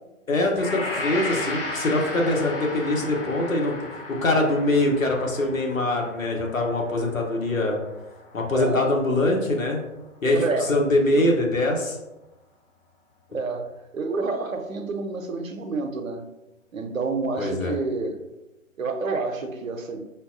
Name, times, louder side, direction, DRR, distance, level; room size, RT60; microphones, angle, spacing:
voice 1, 0.3-3.8 4.1-7.8 8.3-9.8 10.2-10.4 10.7-12.0 17.4-17.7, left 1 dB, 75° left, 1 dB, 1.0 m, -23 dB
Gong, 0.6-9.0 9.3-9.5, left 2 dB, 45° left, 0.7 m, -35 dB
voice 2, 8.5-8.9 10.3-10.8 11.1-11.3 13.3-16.2 16.7-18.2 18.8-20.0, right 3 dB, 75° right, 5 dB, 0.7 m, -28 dB
5.4 x 2.3 x 2.5 m, 0.97 s
figure-of-eight pair, 135°, 40 cm